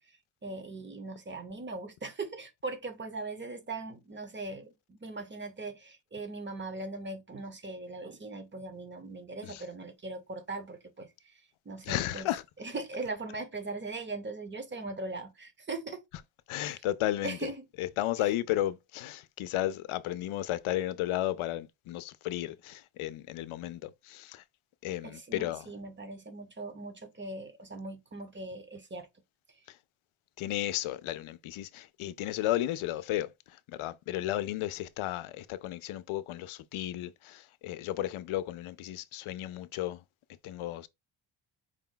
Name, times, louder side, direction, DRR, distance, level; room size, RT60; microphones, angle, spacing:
voice 1, 0.4-11.3 11.7-12.3 12.6-16.0 16.6-16.8 17.2-17.7 18.2-18.3 25.0-29.1, right 3 dB, 25° right, 0.7 m, -40 dB
voice 2, 11.8-12.4 16.1-16.2 16.5-24.4 24.8-25.7 29.7-29.8 30.4-40.0 40.4-40.9, left 14 dB, 85° left, 0.6 m, -34 dB
4.9 x 2.3 x 3.8 m
wide cardioid pair, 145°, 48 cm